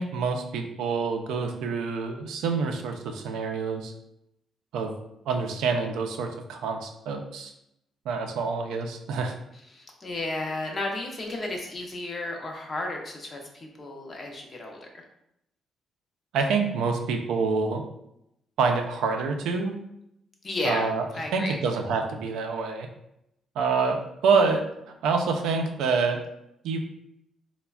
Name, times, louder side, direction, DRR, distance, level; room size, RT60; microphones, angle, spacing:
voice 1, 0.0-3.9 4.7-4.9 5.3-7.5 8.1-9.3 16.3-17.8 18.6-19.8 20.6-21.1 21.3-22.9 23.6-24.6 25.0-26.2 26.6-26.8, right 4 dB, 85° right, 4 dB, 0.3 m, -26 dB
voice 2, 9.7-14.9 20.4-20.8 21.1-21.6, left 2 dB, 35° left, 1 dB, 0.6 m, -33 dB
3.2 x 2.1 x 2.3 m, 0.81 s
cardioid pair, 90°, 0 cm